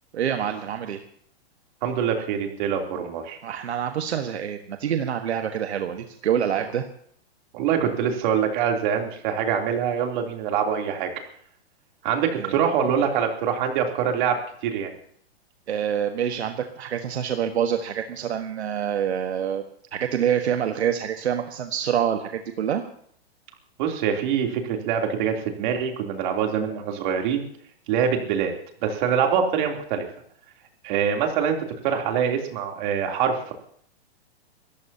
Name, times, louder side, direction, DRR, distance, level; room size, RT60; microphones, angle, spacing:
voice 1, 0.1-1.0 3.4-6.9 12.4-12.5 15.7-19.6 19.9-22.8, right 9 dB, 90° right, 6 dB, 1.4 m, -26 dB
voice 2, 1.8-3.4 6.5-6.6 7.5-11.1 12.0-14.3 14.6-14.9 23.8-27.5 27.9-28.5 28.8-30.0 30.8-31.6 31.8-33.5, right 7 dB, 45° right, 2 dB, 3.2 m, -24 dB
28.5 x 14.0 x 2.8 m, 0.63 s
hypercardioid pair, 150°, 32 cm